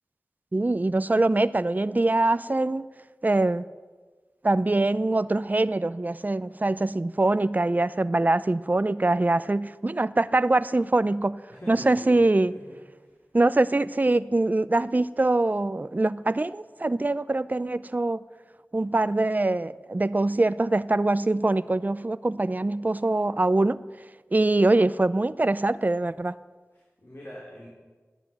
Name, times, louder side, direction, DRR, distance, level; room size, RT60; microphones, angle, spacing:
voice 1, 0.5-2.9 3.2-3.6 4.4-11.4 11.7-12.6 13.3-18.2 18.7-23.8 24.3-26.3, right 2 dB, 35° right, 0.4 m, -23 dB
voice 2, 11.5-12.2 12.7-12.8 26.7-27.7, equal, 50° left, 4.0 m, -44 dB
12.5 x 10.0 x 8.9 m
wide cardioid pair, 45°, 5 cm